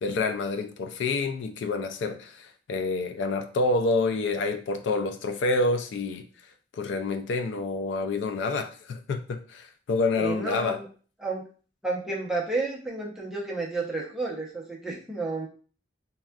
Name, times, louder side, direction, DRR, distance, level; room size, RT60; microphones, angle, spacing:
voice 1, 0.0-6.3 6.7-10.8, left 3 dB, 70° left, 0.3 m, -28 dB
voice 2, 10.1-10.9 11.2-11.4 11.8-15.5, right 3 dB, 5° right, 0.7 m, -31 dB
3.5 x 2.3 x 2.3 m
head